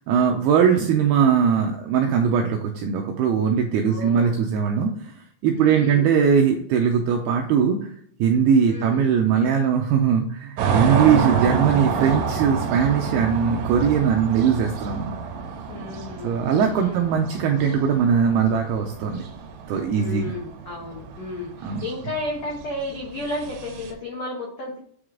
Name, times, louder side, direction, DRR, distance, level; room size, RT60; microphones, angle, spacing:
voice 1, 0.1-7.9 8.2-15.2 16.2-19.2 19.7-20.3 21.6-21.8, right 7 dB, 85° right, 3 dB, 2.2 m, -20 dB
voice 2, 3.9-4.4 5.5-6.1 8.6-9.0 15.7-16.4 16.8-17.0 20.0-24.8, left 2 dB, 75° left, -2 dB, 1.5 m, -33 dB
sound 1, 10.6-23.9, right 6 dB, 70° right, 2.5 m, -28 dB
8.6 x 4.8 x 3.7 m, 0.62 s
omnidirectional pair, 5.2 m